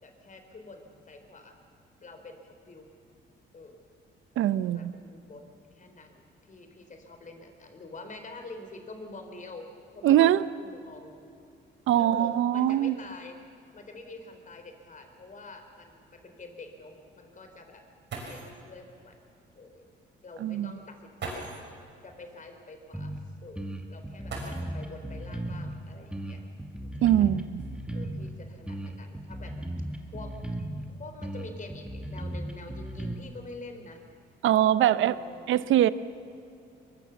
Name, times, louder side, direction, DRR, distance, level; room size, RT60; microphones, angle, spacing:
voice 1, 0.0-1.6 2.0-2.9 3.5-3.8 4.6-9.7 9.9-10.3 10.6-11.1 11.9-13.4 13.7-17.8 18.3-19.2 19.6-19.9 20.2-21.5 22.0-23.1 23.4-26.4 26.8-27.4 27.9-29.6 30.1-30.4 30.9-34.0 34.9-35.5, left 3 dB, 40° left, 6 dB, 4.2 m, -46 dB
voice 2, 4.4-4.9 10.0-10.4 11.9-13.0 20.4-20.7 27.0-27.6 34.4-35.2 35.5-35.9, right 12 dB, 80° right, 15 dB, 0.8 m, -22 dB
sound 1, 18.1-18.7 19.9-20.0 21.2-21.8 24.2-25.0 26.4-26.5 27.2-28.7 29.3-29.7 30.1-30.5, right 3 dB, 65° right, 6.2 m, -42 dB
sound 2, 22.9-23.2 23.6-25.8 26.1-28.3 28.7-30.9 31.2-33.1, right 1 dB, 5° right, 2.5 m, -36 dB
23.0 x 22.0 x 7.2 m, 2.6 s
cardioid pair, 90°, 20 cm